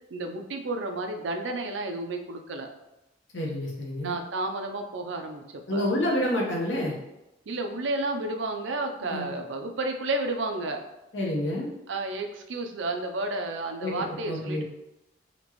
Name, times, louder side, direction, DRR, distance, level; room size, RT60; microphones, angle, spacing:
voice 1, 0.1-2.7 4.0-5.8 7.5-10.8 11.9-14.6, right 2 dB, 75° right, 5 dB, 0.5 m, -31 dB
voice 2, 3.3-4.1 5.7-6.9 9.1-9.3 11.1-11.7 13.8-13.9 14.2-14.6, left 1 dB, 70° left, -2 dB, 1.0 m, -28 dB
4.3 x 3.0 x 2.9 m, 0.93 s
head